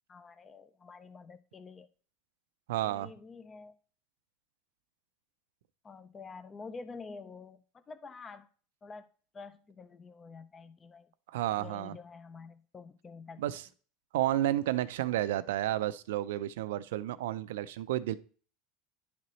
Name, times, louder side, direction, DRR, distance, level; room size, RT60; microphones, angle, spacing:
voice 1, 0.1-1.9 2.8-3.7 5.8-8.5 8.8-9.1 9.3-11.1 11.6-13.4, left 4 dB, 20° left, 12 dB, 0.4 m, -48 dB
voice 2, 2.7-3.1 11.3-11.9 13.4-13.6 14.1-18.2, right 14 dB, 85° right, 14 dB, 0.4 m, -31 dB
10.5 x 4.1 x 3.1 m, 0.41 s
supercardioid pair, 145°, 0 cm